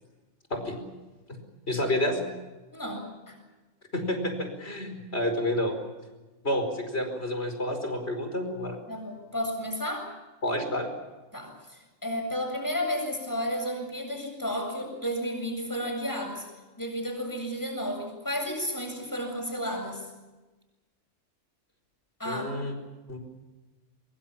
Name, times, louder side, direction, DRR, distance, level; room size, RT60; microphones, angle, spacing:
voice 1, 1.7-2.2 3.9-5.7 6.4-8.8 10.4-10.9 22.3-22.7 23.1-23.2, left 1 dB, 55° left, 6 dB, 5.2 m, -29 dB
voice 2, 2.7-3.4 8.9-10.1 11.3-16.4 16.8-20.0 22.2-22.5, equal, 15° left, 2 dB, 7.6 m, -32 dB
24.0 x 24.0 x 7.3 m, 1.2 s
omnidirectional pair, 1.3 m